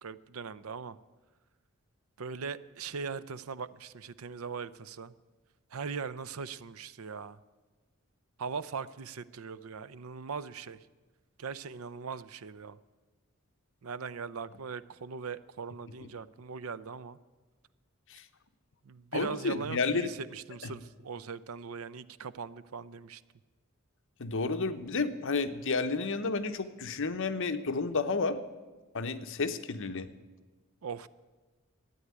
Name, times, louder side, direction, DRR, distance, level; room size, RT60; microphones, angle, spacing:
voice 1, 0.0-1.0 2.2-5.1 5.7-7.4 8.4-10.9 11.4-12.8 13.8-17.2 18.8-23.2 30.8-31.1, right 5 dB, 70° right, 17 dB, 0.5 m, -40 dB
voice 2, 19.1-20.1 20.6-20.7 24.2-28.4 28.9-30.1, left 4 dB, 60° left, 9 dB, 0.9 m, -31 dB
13.0 x 9.4 x 9.5 m, 1.3 s
head